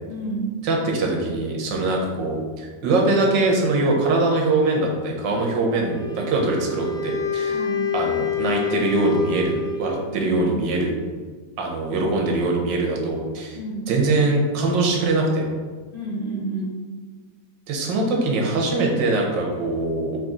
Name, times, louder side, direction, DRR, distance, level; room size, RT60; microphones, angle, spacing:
voice 1, 0.1-0.5 7.5-7.9 10.0-10.6 13.5-13.8 15.9-16.8, right 3 dB, 35° left, -7 dB, 1.0 m, -30 dB
voice 2, 0.6-7.6 7.9-10.9 11.6-13.6 13.9-15.5 17.7-20.2, right 2 dB, 90° right, 0 dB, 1.6 m, -22 dB
Wind instrument woodwind instrument, 5.8-10.2, left 5 dB, 65° left, 0.5 m, -27 dB
5.1 x 2.7 x 3.7 m, 1.5 s
omnidirectional pair, 2.0 m